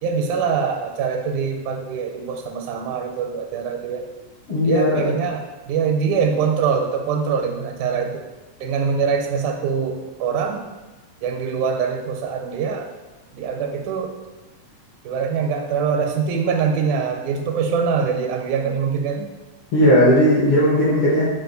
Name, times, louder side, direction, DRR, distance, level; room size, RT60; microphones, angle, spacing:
voice 1, 0.0-4.1 4.6-8.2 8.6-10.6 11.2-12.9 13.3-14.1 15.1-19.3, right 6 dB, 85° right, 3 dB, 2.0 m, -23 dB
voice 2, 4.5-5.1 19.7-21.3, equal, 65° left, -7 dB, 1.4 m, -16 dB
4.9 x 2.4 x 3.8 m, 1.1 s
omnidirectional pair, 3.4 m